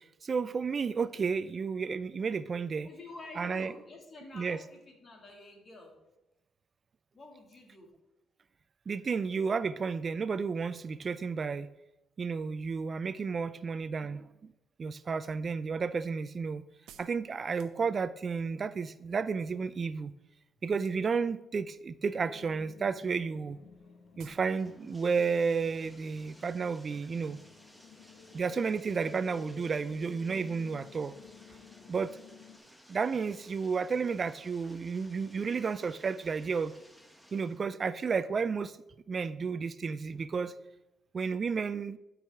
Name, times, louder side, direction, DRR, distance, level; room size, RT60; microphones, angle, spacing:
voice 1, 0.0-2.9 3.4-3.7 4.3-4.6 8.9-11.7 12.2-14.5 14.8-16.6 17.0-20.1 20.6-23.6 24.2-27.4 28.3-31.1 31.9-32.2 32.9-36.7 37.3-38.8 39.1-40.5 41.1-42.0, right 5 dB, 40° right, 15 dB, 0.3 m, -32 dB
voice 2, 2.8-6.0 7.1-7.9, left 2 dB, 40° left, 1 dB, 2.3 m, -49 dB
sound 1, 16.9-18.3 20.7-21.3 21.6-22.2 22.5-22.7 22.9-23.0 23.2-23.3 23.7-23.8 24.2-24.5 24.8-24.9, right 9 dB, 85° right, 0.6 m, -57 dB
sound 2, 22.1-32.6, left 6 dB, 70° left, 0.9 m, -54 dB
Bathtub (filling or washing), 23.6-37.6, equal, ahead, 0.9 m, -59 dB
12.0 x 4.8 x 3.5 m, 0.94 s
cardioid pair, 90°, 0 cm